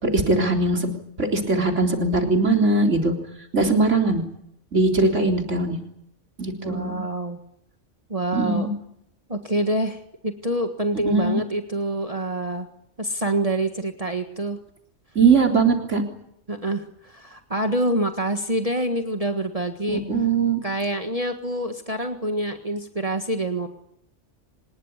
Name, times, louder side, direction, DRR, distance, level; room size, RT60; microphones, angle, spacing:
voice 1, 0.0-0.9 1.2-3.1 3.5-4.2 4.7-5.8 6.4-7.0 8.3-8.7 11.1-11.4 15.2-16.0 19.9-20.6, right 3 dB, 75° right, 3 dB, 4.1 m, -20 dB
voice 2, 6.6-7.4 8.1-8.7 9.3-12.7 13.0-14.6 16.5-20.0 20.6-23.7, right 1 dB, 30° right, 5 dB, 1.7 m, -26 dB
25.0 x 21.0 x 9.7 m, 0.76 s
omnidirectional pair, 1.3 m